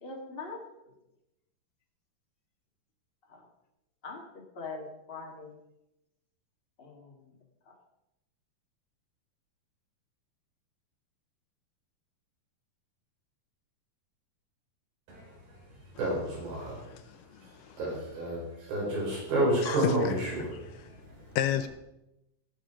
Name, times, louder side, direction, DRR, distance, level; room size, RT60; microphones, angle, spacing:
voice 1, 0.0-0.6 3.3-3.4 4.0-5.5 6.8-7.3 7.6-7.7, left 3 dB, 20° left, 0 dB, 1.6 m, -42 dB
voice 2, 15.1-16.9 17.4-21.4, right 1 dB, 85° right, -4 dB, 6.4 m, -31 dB
voice 3, 16.6-17.8 19.6-20.1 21.4-21.7, left 10 dB, 80° left, 10 dB, 2.1 m, -32 dB
16.5 x 7.2 x 5.0 m, 0.89 s
omnidirectional pair, 4.0 m